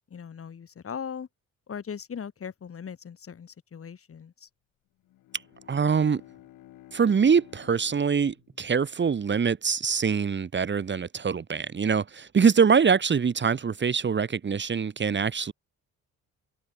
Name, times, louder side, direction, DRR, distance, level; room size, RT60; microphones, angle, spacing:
voice 1, 0.1-1.3 1.7-4.5, left 7 dB, 50° left, 6.7 m, -39 dB
Bowed string instrument, 5.0-9.6, left 15 dB, 85° left, 5.6 m, -53 dB
voice 2, 5.7-6.2 6.9-15.5, right 6 dB, 35° right, 2.0 m, -24 dB
cardioid pair, 90°, 30 cm